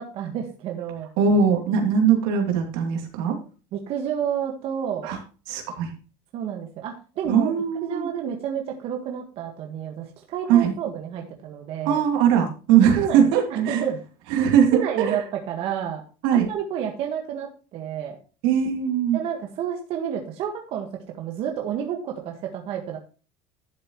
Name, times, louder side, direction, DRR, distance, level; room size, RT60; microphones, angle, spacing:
voice 1, 0.0-1.2 3.7-5.1 6.3-7.5 7.8-12.0 13.0-14.0 14.7-16.0 16.3-18.2 19.1-23.0, right 8 dB, 50° right, 2 dB, 1.8 m, -30 dB
voice 2, 1.2-3.4 5.0-5.2 5.5-5.9 7.3-8.1 10.5-10.7 11.8-13.8 14.3-15.2 16.2-16.5 18.4-19.2, right 7 dB, 85° right, 3 dB, 3.0 m, -20 dB
11.5 x 7.7 x 3.1 m, 0.34 s
cardioid pair, 145°, 12 cm